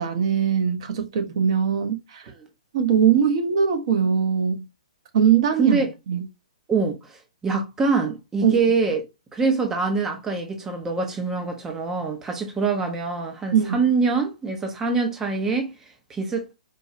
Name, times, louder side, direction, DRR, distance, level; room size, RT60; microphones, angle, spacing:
voice 1, 0.0-2.2 2.7-4.7 5.1-5.8 6.1-6.2 8.4-8.6 13.5-13.8, right 7 dB, 45° right, 0.8 m, -21 dB
voice 2, 5.6-5.9 6.7-9.0 9.3-16.5, right 4 dB, 10° right, 0.6 m, -24 dB
4.6 x 2.3 x 2.7 m
figure-of-eight pair, 120°, 4 cm